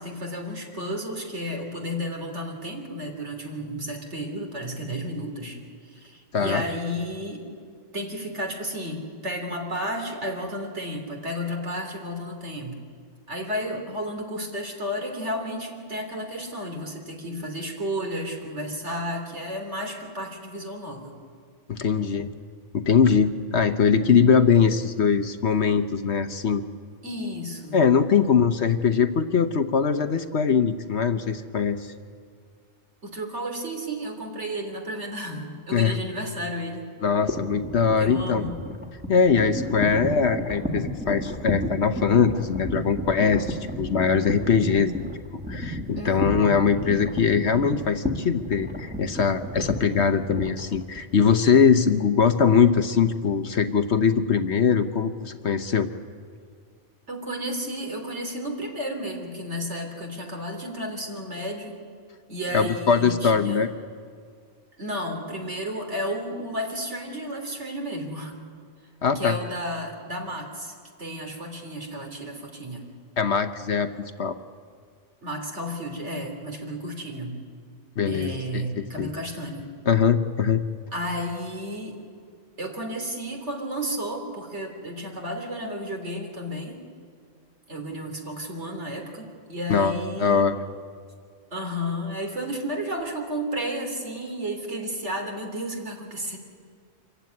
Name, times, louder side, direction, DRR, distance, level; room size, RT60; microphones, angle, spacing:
voice 1, 0.0-7.5 7.9-12.8 13.3-21.1 27.0-27.8 33.0-36.8 38.0-38.6 46.0-46.5 57.1-61.8 62.3-63.6 64.8-68.4 69.2-72.9 75.2-77.4 78.0-79.7 80.9-82.0 82.6-86.8 87.7-90.5 91.5-96.4, equal, 60° right, 2 dB, 3.7 m, -32 dB
voice 2, 21.7-22.3 22.7-26.6 27.7-31.9 35.7-36.0 37.0-38.5 39.1-45.1 45.5-55.9 62.5-63.7 69.0-69.4 73.2-73.9 74.2-74.4 78.0-79.1 79.9-80.6 89.7-89.9 90.2-90.5, left 6 dB, 60° left, 9 dB, 1.1 m, -21 dB
sound 1, 37.3-51.3, equal, 5° right, 1.9 m, -32 dB
26.0 x 15.0 x 9.6 m, 2.1 s
omnidirectional pair, 1.4 m